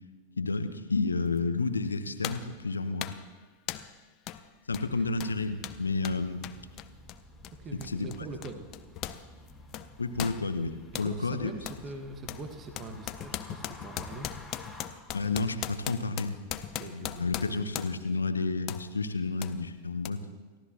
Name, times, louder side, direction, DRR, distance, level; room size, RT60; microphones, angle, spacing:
voice 1, 0.4-3.1 4.7-6.4 7.9-8.1 10.0-11.5 15.1-16.4 16.8-20.2, left 3 dB, 75° left, 9 dB, 1.1 m, -31 dB
sound 1, 1.4-1.5 2.2-2.5 3.0-3.3 3.7-4.0 4.3-4.4 4.7-9.2 9.5-11.1 11.7-11.8 12.3-18.1 18.7-18.9 19.4-19.6 20.0-20.1, left 12 dB, 35° left, 0.8 m, -39 dB
sound 2, 4.8-14.9, left 1 dB, ahead, 3.9 m, -52 dB
voice 2, 7.6-8.7 11.0-14.3 16.7-17.3, right 3 dB, 25° right, 5 dB, 1.6 m, -42 dB
29.5 x 15.5 x 3.0 m, 1.4 s
figure-of-eight pair, 90°, 0 cm